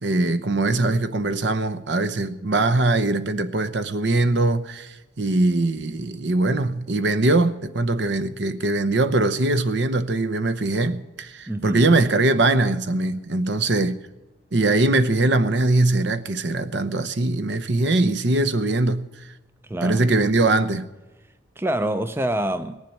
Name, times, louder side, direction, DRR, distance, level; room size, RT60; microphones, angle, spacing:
voice 1, 0.0-14.0 14.5-19.3 19.8-20.9, right 2 dB, 60° right, 0.8 m, -21 dB
voice 2, 11.5-11.9 19.6-20.1 21.6-22.8, right 1 dB, 10° right, 0.5 m, -26 dB
19.0 x 7.4 x 8.9 m
head